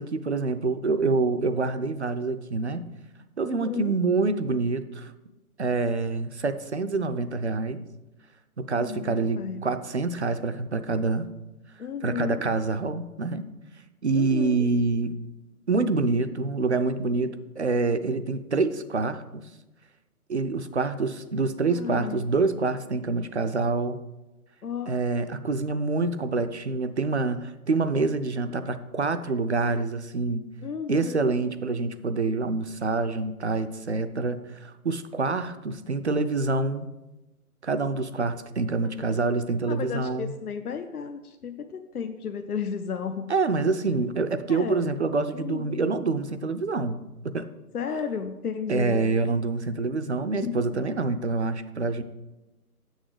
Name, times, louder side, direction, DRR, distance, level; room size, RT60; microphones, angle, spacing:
voice 1, 0.0-2.9 3.4-5.1 5.6-7.8 8.6-11.3 12.0-13.4 14.0-15.2 15.7-19.4 20.3-24.0 24.9-30.4 30.9-36.9 37.6-40.3 43.3-47.0 47.2-47.5 48.7-52.0, right 3 dB, 50° right, 11 dB, 0.5 m, -26 dB
voice 2, 3.4-4.0 8.8-9.6 11.8-12.5 14.1-14.7 21.6-22.2 24.6-24.9 30.6-31.4 39.0-39.2 39.7-43.3 44.5-44.9 45.3-45.9 47.7-49.1 50.4-50.8, left 6 dB, 70° left, 7 dB, 0.7 m, -33 dB
7.2 x 6.4 x 4.8 m, 1.1 s
figure-of-eight pair, 145°, 46 cm